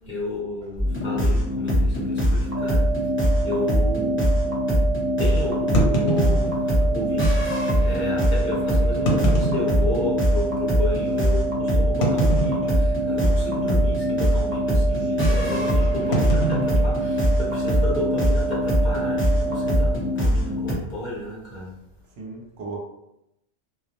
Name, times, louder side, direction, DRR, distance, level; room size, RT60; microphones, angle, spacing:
voice 1, 0.0-2.9 3.4-4.3 5.2-7.5 7.7-21.8, left 1 dB, 45° left, -6 dB, 0.7 m, -32 dB
sound 1, 0.8-20.7, equal, 10° left, 0.7 m, -22 dB
sound 2, 1.0-1.2 1.9-2.0 2.3-2.4 3.0-3.2 5.7-6.9 7.8-7.9 8.9-10.3 10.8-10.9 12.0-13.1 13.4-13.7 14.0-14.3 16.1-17.7, right 1 dB, 75° left, 0.8 m, -26 dB
sound 3, 2.5-20.0, right 5 dB, 50° right, 0.5 m, -29 dB
voice 2, 15.0-16.1 22.2-22.8, right 2 dB, 70° right, -1 dB, 0.8 m, -37 dB
2.2 x 2.0 x 2.8 m, 0.83 s
omnidirectional pair, 1.2 m